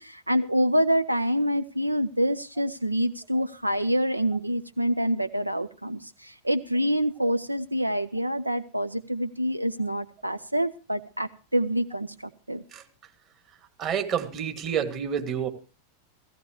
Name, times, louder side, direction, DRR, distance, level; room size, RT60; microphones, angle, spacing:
voice 1, 0.0-12.1 12.5-12.6, equal, 85° right, 14 dB, 0.6 m, -26 dB
voice 2, 13.8-15.5, right 8 dB, 35° right, 5 dB, 2.5 m, -29 dB
17.0 x 16.5 x 3.2 m, 0.35 s
figure-of-eight pair, 90°, 0 cm